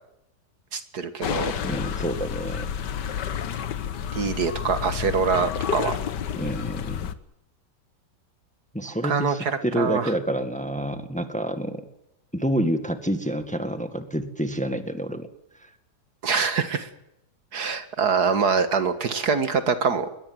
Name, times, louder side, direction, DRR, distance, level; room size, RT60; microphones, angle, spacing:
voice 1, 0.7-1.5 4.1-6.0 9.0-10.1 16.2-16.9 17.5-20.1, right 5 dB, 70° right, 10 dB, 2.2 m, -24 dB
sound 1, 1.2-7.1, left 8 dB, 85° left, 1.8 m, -30 dB
voice 2, 1.6-2.7 6.4-7.1 8.7-11.8 12.3-15.3 15.6-15.7, right 1 dB, 5° left, 9 dB, 1.7 m, -28 dB
21.5 x 21.5 x 7.9 m, 0.85 s
omnidirectional pair, 1.8 m